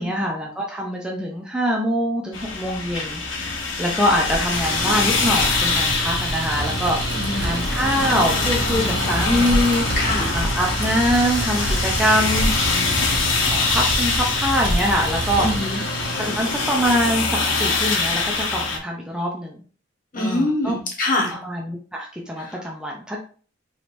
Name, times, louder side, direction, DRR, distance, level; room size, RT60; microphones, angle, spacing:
voice 1, 0.0-7.0 7.3-9.9 10.3-12.5 13.5-15.5 16.1-19.6 20.2-20.7 21.4-23.2, equal, 5° right, -2 dB, 0.6 m, -24 dB
sound 1, 2.3-18.8, left 4 dB, 75° left, 0.9 m, -24 dB
Bicycle, 4.0-15.7, right 1 dB, 75° right, 0.8 m, -28 dB
Mechanical fan, 4.5-17.1, right 4 dB, 55° right, 0.5 m, -33 dB
voice 2, 7.1-7.6 10.0-10.3 15.4-15.8 20.1-21.4 22.4-22.6, left 2 dB, 45° left, 0 dB, 1.3 m, -24 dB
4.8 x 3.2 x 2.6 m, 0.41 s
head